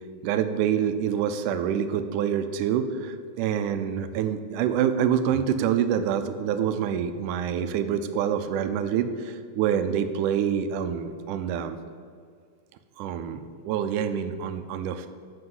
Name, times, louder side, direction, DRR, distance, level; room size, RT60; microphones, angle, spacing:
voice 1, 0.2-11.8 13.0-15.1, right 8 dB, 80° right, 10 dB, 2.0 m, -26 dB
7.6 x 6.2 x 7.7 m, 2.1 s
omnidirectional pair, 3.8 m